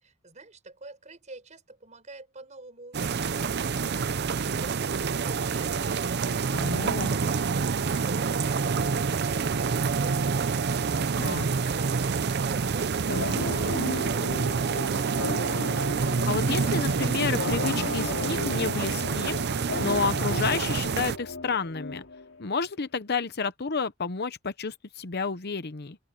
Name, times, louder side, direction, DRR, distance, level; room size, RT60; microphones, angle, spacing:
voice 1, 0.0-5.8 6.3-10.2 11.1-15.1, right 2 dB, 35° right, 4.8 m, -47 dB
sound 1, 2.9-21.2, right 5 dB, 50° right, 0.6 m, -27 dB
voice 2, 6.5-7.1 11.1-11.5 16.3-22.0 22.4-26.0, left 4 dB, 50° left, 0.8 m, -30 dB
sound 2, 13.1-22.5, left 2 dB, 70° left, 3.8 m, -35 dB
open air
head